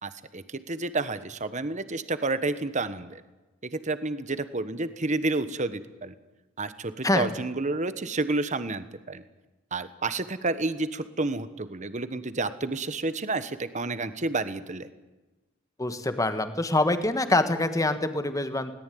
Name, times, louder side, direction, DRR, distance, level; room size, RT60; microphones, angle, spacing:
voice 1, 0.0-3.2 3.6-6.1 6.6-9.2 9.7-14.9, right 3 dB, 35° right, 12 dB, 1.3 m, -30 dB
voice 2, 15.8-18.7, left 2 dB, 15° left, 9 dB, 1.6 m, -25 dB
21.0 x 18.5 x 9.4 m, 1.1 s
head